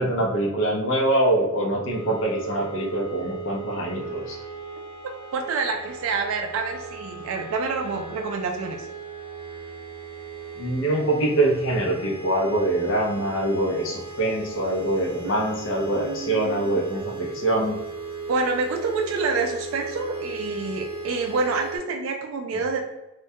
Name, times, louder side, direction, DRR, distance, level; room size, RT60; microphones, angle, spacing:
voice 1, 0.0-4.4 10.6-17.8, right 1 dB, 65° left, 0 dB, 0.6 m, -24 dB
sound 1, 1.9-21.8, right 4 dB, 30° right, 0.7 m, -37 dB
voice 2, 5.3-8.9 15.2-15.4 15.7-16.7 18.3-22.9, right 4 dB, 75° right, 3 dB, 0.3 m, -27 dB
2.2 x 2.1 x 2.7 m, 1.0 s
head